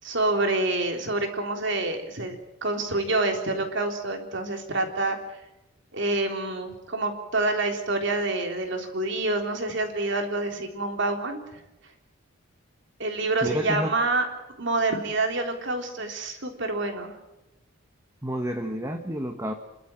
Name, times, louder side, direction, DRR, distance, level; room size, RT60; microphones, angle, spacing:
voice 1, 0.0-2.4 2.6-5.2 5.9-11.4 13.0-14.3 14.6-17.2, right 2 dB, 55° right, 4 dB, 3.5 m, -27 dB
voice 2, 13.4-13.9 18.2-19.5, equal, 15° right, 4 dB, 1.5 m, -29 dB
28.5 x 12.5 x 9.0 m, 0.95 s
head